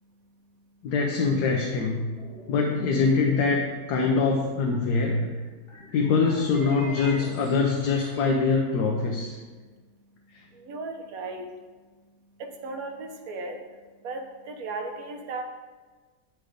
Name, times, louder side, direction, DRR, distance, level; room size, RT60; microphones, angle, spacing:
voice 1, 0.8-2.1 2.5-3.6 3.9-5.3 5.9-9.3, left 4 dB, 85° left, 1 dB, 1.3 m, -23 dB
sound 1, 1.0-1.3 1.9-8.6, left 1 dB, 35° left, 2.0 m, -43 dB
voice 2, 10.6-11.4 12.4-13.6 14.0-15.4, right 3 dB, 65° right, 4 dB, 1.3 m, -35 dB
8.4 x 4.7 x 5.0 m, 1.4 s
omnidirectional pair, 1.7 m